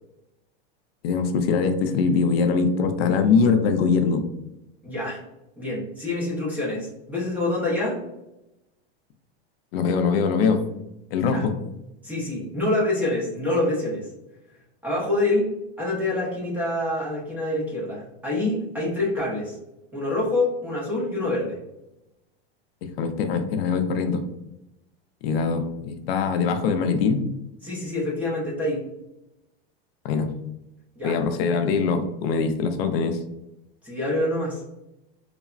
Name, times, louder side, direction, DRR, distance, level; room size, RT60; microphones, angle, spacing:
voice 1, 1.0-4.2 9.7-10.6 11.1-11.6 23.0-24.2 25.2-27.3 30.0-30.3 31.0-33.2, left 5 dB, 70° left, 7 dB, 0.5 m, -22 dB
voice 2, 4.8-5.2 5.6-8.0 11.3-11.4 12.0-14.1 14.8-15.5 15.8-19.6 19.9-21.6 27.6-28.8 31.0-31.2 33.8-34.6, left 2 dB, 5° right, -6 dB, 0.5 m, -26 dB
3.2 x 2.0 x 2.4 m, 0.90 s
supercardioid pair, 160°, 31 cm